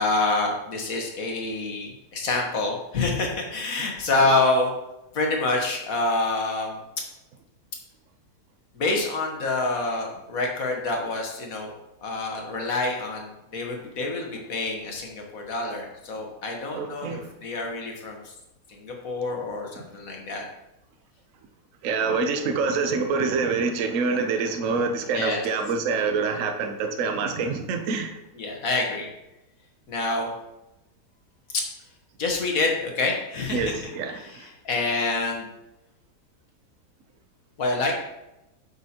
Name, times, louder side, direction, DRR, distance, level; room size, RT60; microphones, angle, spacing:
voice 1, 0.0-4.7 5.1-6.8 8.7-11.7 12.0-18.3 18.7-20.4 25.1-25.4 28.4-29.1 29.9-30.3 32.2-33.7 34.1-35.5 37.6-38.0, left 2 dB, 60° left, 1 dB, 1.6 m, -27 dB
voice 2, 16.7-17.3 21.8-28.1 33.5-34.5, right 4 dB, 60° right, 6 dB, 1.0 m, -26 dB
8.1 x 6.8 x 2.9 m, 0.94 s
omnidirectional pair, 1.7 m